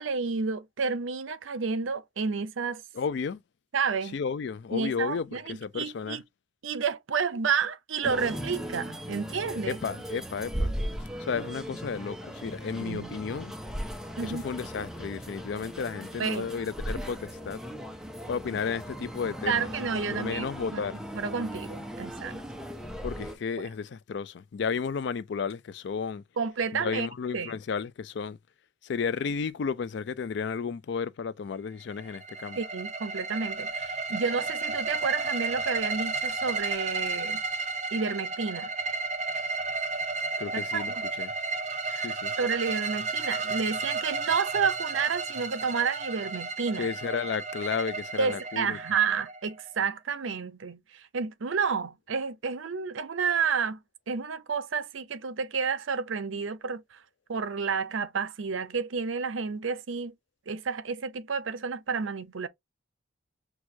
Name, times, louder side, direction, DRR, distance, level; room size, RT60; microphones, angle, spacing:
voice 1, 0.0-2.8 3.7-4.1 4.7-6.2 6.6-9.8 12.8-13.1 14.2-14.4 16.2-16.5 19.5-20.8 21.1-22.4 26.4-27.1 27.3-27.6 32.6-37.4 37.9-38.7 40.5-40.8 41.9-46.9 48.2-53.8 54.1-57.0 57.3-60.1 60.5-62.5, right 5 dB, 75° right, 0.6 m, -30 dB
voice 2, 2.9-3.4 4.0-6.2 9.7-10.8 11.2-13.5 14.2-17.6 18.3-19.7 20.0-21.0 23.0-26.2 26.7-28.4 28.8-32.6 40.4-41.3 42.0-42.3 46.8-48.8, left 5 dB, 60° left, 0.4 m, -33 dB
sound 1, 8.0-23.4, equal, 5° right, 0.6 m, -37 dB
sound 2, 31.9-49.7, right 3 dB, 35° right, 0.7 m, -33 dB
6.1 x 2.4 x 2.8 m
head